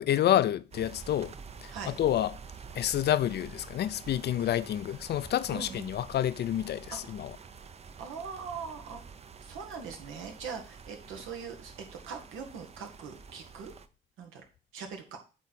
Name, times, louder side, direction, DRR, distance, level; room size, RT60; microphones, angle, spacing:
voice 1, 0.0-1.3 1.6-2.4 2.7-7.4, left 11 dB, 55° left, 0.4 m, -28 dB
sound 1, 0.7-13.9, right 5 dB, 30° right, 0.5 m, -48 dB
voice 2, 5.5-5.9 6.9-7.1 8.0-9.0 9.4-11.7 12.1-13.7 14.2-14.4 14.7-15.2, right 6 dB, 90° right, 1.4 m, -41 dB
8.3 x 3.2 x 4.1 m
cardioid pair, 90°, 20 cm